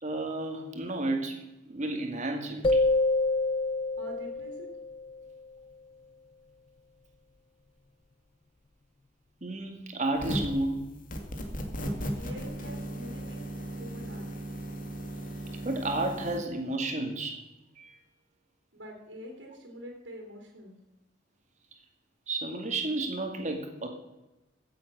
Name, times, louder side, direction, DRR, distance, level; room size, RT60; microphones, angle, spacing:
voice 1, 0.0-2.8 9.4-10.9 15.6-17.4 17.8-18.0 22.3-23.9, right 2 dB, 40° right, 4 dB, 2.3 m, -32 dB
sound 1, 2.6-5.3, left 2 dB, 30° left, 0.5 m, -27 dB
voice 2, 4.0-4.7 12.2-13.4 13.8-14.3 18.7-20.8, equal, 85° right, 1 dB, 3.2 m, -45 dB
sound 2, 10.1-10.6 11.1-16.4, right 1 dB, 45° left, 2.1 m, -36 dB
15.5 x 7.9 x 6.2 m, 1.0 s
head